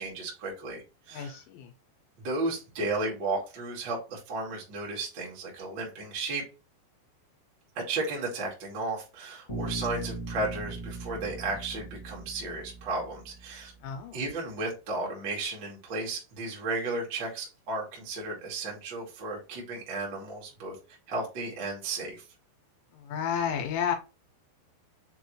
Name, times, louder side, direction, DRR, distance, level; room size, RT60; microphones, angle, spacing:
voice 1, 0.0-1.4 2.2-6.4 7.7-13.7 14.1-20.7 21.1-22.2, right 2 dB, 75° right, -3 dB, 1.0 m, -34 dB
voice 2, 1.1-1.7 13.8-14.2 22.9-24.0, left 7 dB, 85° left, 5 dB, 3.1 m, -31 dB
Bass guitar, 9.5-13.5, right 2 dB, 25° left, 1.0 m, -39 dB
6.6 x 2.6 x 3.1 m, 0.30 s
omnidirectional pair, 5.0 m